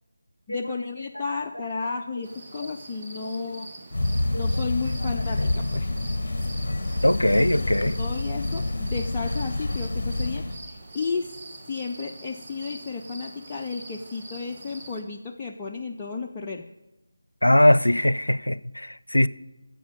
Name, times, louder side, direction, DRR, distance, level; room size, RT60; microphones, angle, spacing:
voice 1, 0.5-3.7 4.4-5.9 7.8-11.4 11.7-16.6, left 4 dB, 15° left, 0.5 m, -33 dB
sound 1, 2.2-15.0, right 2 dB, 25° right, 1.3 m, -44 dB
voice 2, 3.1-3.6 4.3-4.4 7.0-8.0 17.4-19.3, left 1 dB, 85° left, 0.5 m, -21 dB
sound 2, 3.9-10.6, left 2 dB, 50° left, 1.0 m, -27 dB
10.0 x 7.5 x 6.8 m
figure-of-eight pair, 160°, 0 cm